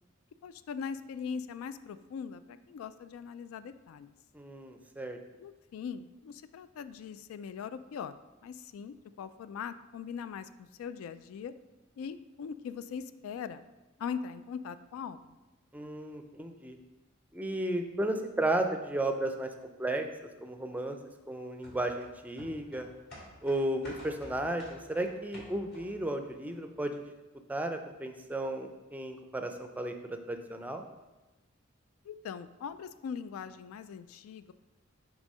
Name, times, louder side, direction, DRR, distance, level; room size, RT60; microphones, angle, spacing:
voice 1, 0.4-4.1 5.4-8.2 8.4-11.5 12.0-13.6 14.0-15.2 32.0-34.5, left 6 dB, 90° left, 13 dB, 0.3 m, -41 dB
voice 2, 4.3-5.2 15.7-16.8 17.3-19.5 19.8-20.1 20.4-21.0 21.3-22.9 23.4-26.9 27.5-30.8, right 1 dB, 10° right, 6 dB, 0.4 m, -34 dB
sound 1, 21.6-26.1 26.5-26.6, equal, 55° left, 2.2 m, -51 dB
6.1 x 3.6 x 5.4 m, 1.1 s
head